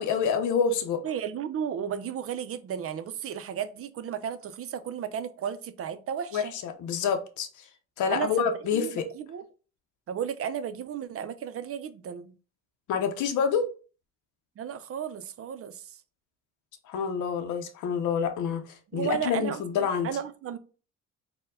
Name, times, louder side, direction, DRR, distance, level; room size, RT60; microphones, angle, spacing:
voice 1, 0.0-1.0 6.3-7.5 8.0-9.1 12.9-13.7 16.9-20.1, left 6 dB, 75° left, 0.6 m, -27 dB
voice 2, 1.0-6.5 8.1-9.5 10.1-12.3 14.6-16.0 18.9-20.6, right 8 dB, 50° right, 0.5 m, -34 dB
4.4 x 2.2 x 3.6 m
cardioid pair, 90°, 30 cm